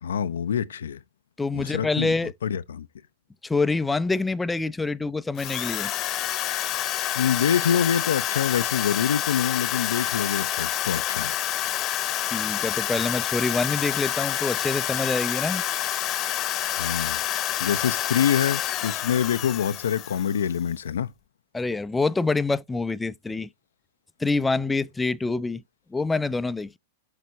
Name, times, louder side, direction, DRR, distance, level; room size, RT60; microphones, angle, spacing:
voice 1, 0.0-1.0 1.5-2.1 2.4-2.9 7.1-11.3 16.8-17.2 17.6-21.1, left 8 dB, 70° left, 0.5 m, -25 dB
voice 2, 1.4-2.3 3.4-5.9 12.2-15.6 21.5-23.5 24.2-25.6 25.9-26.8, left 3 dB, 10° left, 0.5 m, -26 dB
Drill, 5.4-20.6, left 13 dB, 35° left, 0.9 m, -28 dB
6.5 x 6.0 x 3.9 m
figure-of-eight pair, 100°, 0 cm